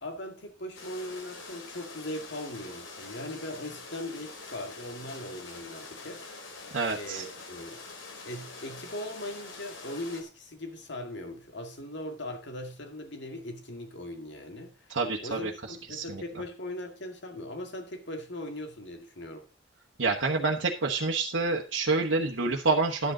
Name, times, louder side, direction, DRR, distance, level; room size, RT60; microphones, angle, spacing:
voice 1, 0.0-6.4 6.9-7.8 8.2-14.7 15.2-19.5, left 1 dB, 65° left, 2.2 m, -39 dB
sound 1, 0.7-10.2, left 3 dB, 90° left, 2.7 m, -45 dB
voice 2, 6.7-7.2 14.9-15.5 15.9-16.2 20.0-23.1, right 3 dB, 80° right, 1.3 m, -27 dB
12.0 x 9.0 x 3.8 m
head